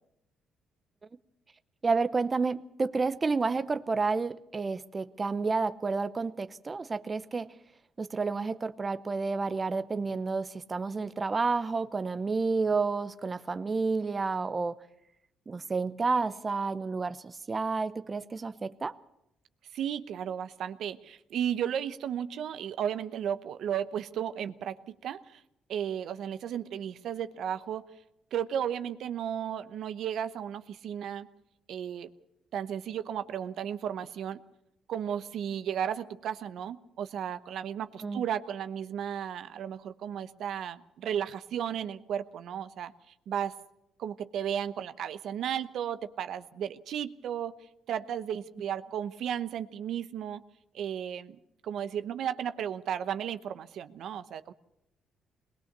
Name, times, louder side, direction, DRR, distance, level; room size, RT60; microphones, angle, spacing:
voice 1, 1.8-7.5 8.0-14.8 15.5-19.0 38.0-38.2, right 4 dB, 30° right, 0.7 m, -30 dB
voice 2, 19.7-25.4 25.7-27.8 28.3-31.3 31.7-32.1 32.5-34.4 34.9-42.9 43.3-43.5 44.0-47.5 47.9-50.4 50.7-54.5, right 9 dB, 70° right, 0.9 m, -34 dB
20.5 x 19.5 x 6.7 m
cardioid pair, 85°, 0 cm